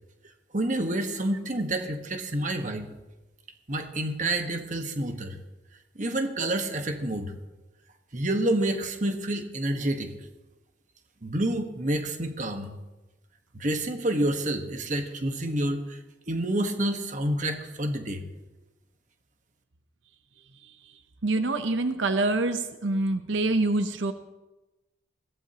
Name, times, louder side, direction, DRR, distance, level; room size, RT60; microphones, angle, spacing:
voice 1, 0.5-2.9 3.7-5.3 5.9-7.3 8.1-10.1 11.2-12.7 13.5-16.0 16.3-18.2, right 1 dB, 40° right, 5 dB, 1.3 m, -28 dB
voice 2, 20.6-20.9 21.2-24.1, right 2 dB, 85° right, 9 dB, 0.8 m, -26 dB
21.0 x 16.0 x 2.9 m, 1.1 s
head